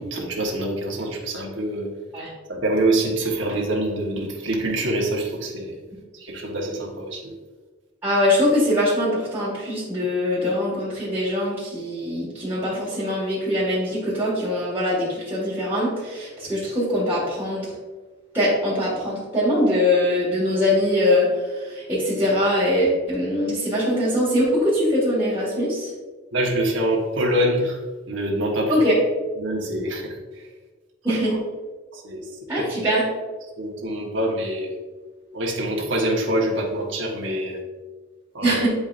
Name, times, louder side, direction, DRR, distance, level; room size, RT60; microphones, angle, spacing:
voice 1, 0.0-1.9 2.5-5.8 6.1-7.3 26.3-27.8 28.1-28.7 29.4-30.5 31.1-31.4 31.9-32.2 32.8-32.9 33.6-34.8 35.3-37.6 38.3-38.6, right 1 dB, 65° right, -1 dB, 1.3 m, -25 dB
voice 2, 8.0-17.7 18.3-25.9 28.7-29.0 31.0-31.3 32.5-33.0 38.4-38.7, left 1 dB, 10° right, -9 dB, 1.8 m, -22 dB
8.6 x 4.8 x 2.5 m, 1.3 s
head